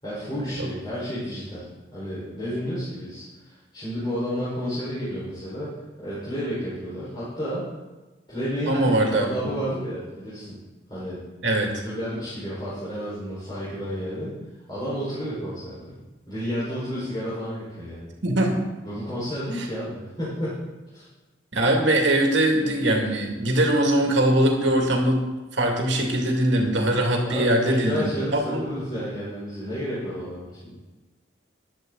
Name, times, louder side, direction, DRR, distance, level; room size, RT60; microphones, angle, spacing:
voice 1, 0.0-7.6 8.3-10.6 10.9-11.2 11.8-14.3 14.7-15.9 16.3-18.1 18.8-20.6 20.9-21.1 27.2-30.8, equal, 20° left, -11 dB, 4.8 m, -31 dB
voice 2, 8.7-9.3 11.4-11.7 18.2-18.6 19.5-19.7 21.5-25.2 25.5-28.7, right 1 dB, 70° right, 1 dB, 2.5 m, -22 dB
14.5 x 11.0 x 4.0 m, 1.2 s
head